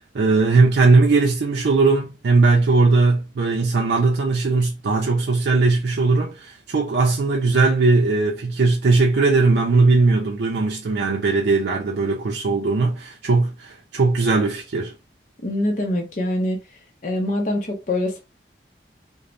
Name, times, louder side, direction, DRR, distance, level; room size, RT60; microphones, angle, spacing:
voice 1, 0.1-14.9, right 3 dB, 75° right, 0.5 m, -19 dB
voice 2, 15.4-16.6 17.0-18.2, left 1 dB, 45° left, 0.6 m, -24 dB
3.0 x 2.0 x 2.4 m
head